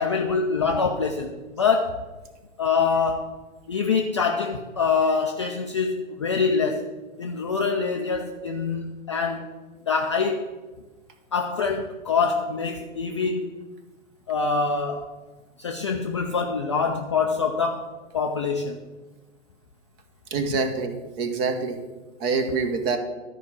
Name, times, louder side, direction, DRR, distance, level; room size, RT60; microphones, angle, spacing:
voice 1, 0.0-2.0 2.6-3.3 3.7-6.9 7.2-9.5 9.9-10.5 11.3-13.5 14.3-15.1 15.6-18.8, left 5 dB, 25° left, 2 dB, 0.3 m, -25 dB
voice 2, 20.3-21.8 22.2-23.0, right 4 dB, 30° right, 7 dB, 1.0 m, -26 dB
12.5 x 4.8 x 6.0 m, 1.2 s
figure-of-eight pair, 115°, 39 cm